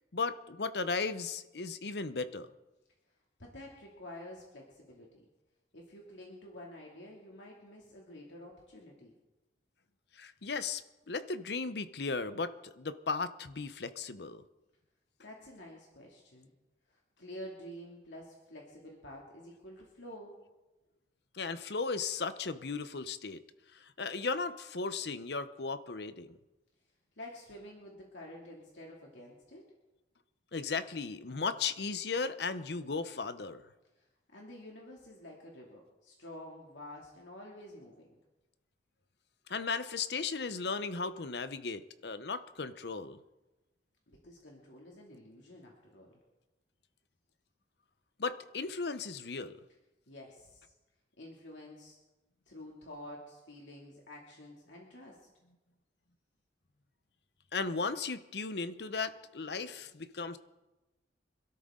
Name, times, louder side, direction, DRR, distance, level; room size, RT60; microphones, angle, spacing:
voice 1, 0.1-2.5 10.2-10.8 11.1-14.4 21.3-23.4 23.8-26.4 30.5-33.6 39.5-43.2 48.2-49.6 57.5-60.4, left 4 dB, 65° left, 12 dB, 0.8 m, -36 dB
voice 2, 3.4-5.2 5.7-9.1 15.2-16.5 16.9-20.4 27.2-29.6 34.0-34.1 34.3-38.2 44.1-46.2 50.1-50.7 51.2-52.0 52.5-55.3, left 1 dB, 90° left, -2 dB, 2.5 m, -49 dB
26.0 x 13.0 x 3.8 m, 1.1 s
head